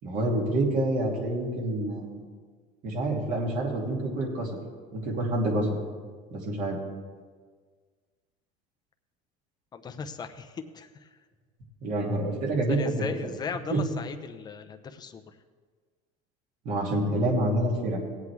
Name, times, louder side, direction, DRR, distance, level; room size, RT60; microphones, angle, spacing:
voice 1, 0.0-2.2 2.8-4.5 4.9-5.8 6.3-6.8 11.8-13.0 13.7-13.8 16.6-18.0, right 1 dB, 55° right, -2 dB, 2.8 m, -27 dB
voice 2, 9.7-11.1 12.7-15.2, left 6 dB, 25° left, 7 dB, 0.8 m, -37 dB
18.0 x 8.2 x 3.5 m, 1.5 s
cardioid pair, 130°, 17 cm